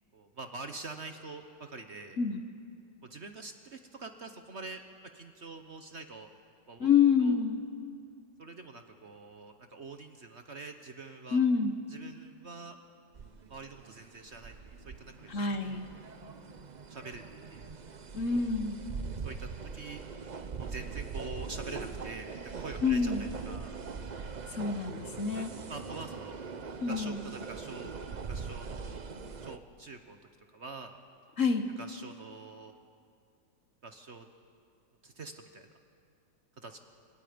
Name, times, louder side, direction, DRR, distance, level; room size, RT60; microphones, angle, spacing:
voice 1, 0.1-2.2 3.0-4.8 5.1-6.3 6.7-6.9 7.2-7.4 8.4-11.4 11.9-12.8 13.5-15.3 16.9-17.2 17.5-17.9 18.3-18.4 19.2-20.0 20.6-23.8 25.0-26.4 26.9-30.2 30.5-31.0 31.8-33.0 33.8-34.3 35.0-35.7 36.6-36.8, right 3 dB, 45° right, 6 dB, 1.1 m, -45 dB
voice 2, 6.8-7.6 11.3-11.7 15.3-15.9 18.1-18.8 22.8-23.2 24.5-25.5 26.8-27.2 31.4-31.7, left 6 dB, 50° left, 7 dB, 1.2 m, -27 dB
sound 1, 13.1-29.6, right 5 dB, 70° right, 0.4 m, -42 dB
27.0 x 26.0 x 5.2 m, 2.4 s
omnidirectional pair, 1.9 m